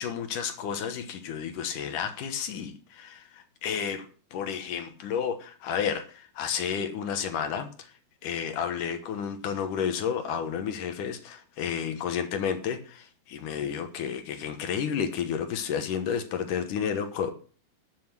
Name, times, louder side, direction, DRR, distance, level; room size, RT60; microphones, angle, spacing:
voice 1, 0.0-4.1 4.3-7.9 8.2-17.3, left 7 dB, 65° left, 8 dB, 2.4 m, -31 dB
13.0 x 7.7 x 6.0 m, 0.40 s
omnidirectional pair, 4.4 m